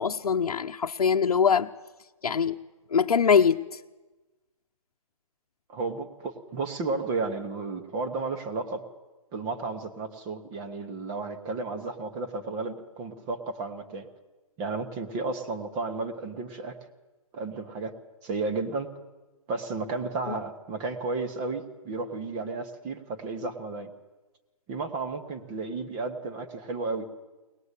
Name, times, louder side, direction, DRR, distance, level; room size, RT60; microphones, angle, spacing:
voice 1, 0.0-1.7 2.2-2.5 2.9-3.8 20.3-20.4, left 6 dB, 85° left, 2 dB, 1.0 m, -23 dB
voice 2, 5.7-8.8 9.3-14.1 14.6-16.8 17.3-18.0 18.2-18.9 19.5-23.9 24.7-27.0, right 3 dB, 15° right, 6 dB, 1.1 m, -33 dB
23.5 x 19.5 x 8.3 m, 1.2 s
hypercardioid pair, 175°, 19 cm